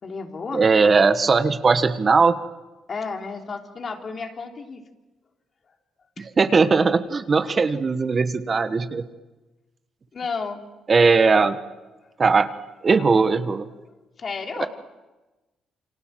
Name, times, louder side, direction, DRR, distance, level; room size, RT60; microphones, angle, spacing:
voice 1, 0.0-0.7 2.9-4.8 6.2-6.3 10.1-10.6 12.0-12.1 14.2-14.7, left 4 dB, 45° left, 3 dB, 3.2 m, -32 dB
voice 2, 0.5-2.4 6.2-9.0 10.9-11.6 12.2-12.5 12.8-13.6 14.6-14.7, right 4 dB, 35° right, 10 dB, 1.4 m, -19 dB
28.5 x 24.5 x 7.6 m, 1.1 s
cardioid pair, 90°, 0 cm